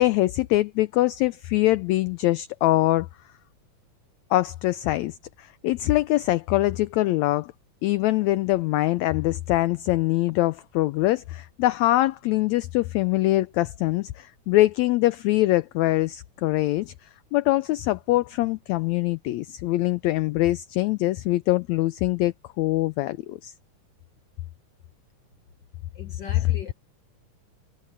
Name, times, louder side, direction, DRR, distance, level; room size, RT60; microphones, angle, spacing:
voice 1, 0.0-3.1 4.3-7.5 7.8-23.5, left 17 dB, 80° left, 1.7 m, -23 dB
voice 2, 25.9-26.7, left 6 dB, 50° left, 1.3 m, -40 dB
omnidirectional pair, 3.6 m